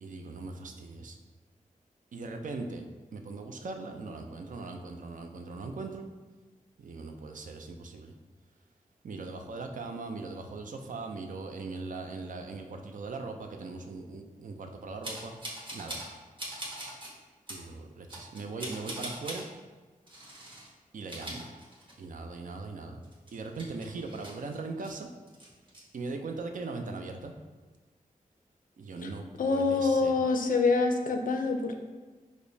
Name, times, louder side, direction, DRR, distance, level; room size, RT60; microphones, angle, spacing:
voice 1, 0.0-1.2 2.1-2.9 3.1-6.1 6.8-8.1 9.0-16.0 17.5-19.5 20.9-21.4 22.0-23.0 23.3-25.1 25.9-27.3 28.8-30.2, right 3 dB, 65° right, 4 dB, 0.4 m, -40 dB
sound 1, 15.0-16.1 16.4-17.1 17.5-17.6 18.1-19.4 20.1-20.7 21.0-22.2 22.5-22.6 23.0-24.9 25.3-25.8, right 1 dB, 35° right, 1.2 m, -41 dB
voice 2, 29.4-31.7, left 4 dB, 70° left, 5 dB, 0.4 m, -26 dB
4.8 x 2.1 x 2.6 m, 1.3 s
cardioid pair, 55°, 15 cm